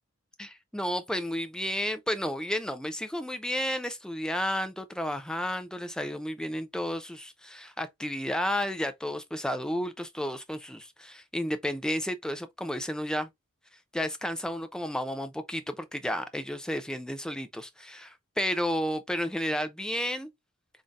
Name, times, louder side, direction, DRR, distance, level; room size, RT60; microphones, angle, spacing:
voice 1, 0.4-13.3 13.9-20.3, equal, 5° left, 0.5 m, -32 dB
3.9 x 3.6 x 2.4 m
head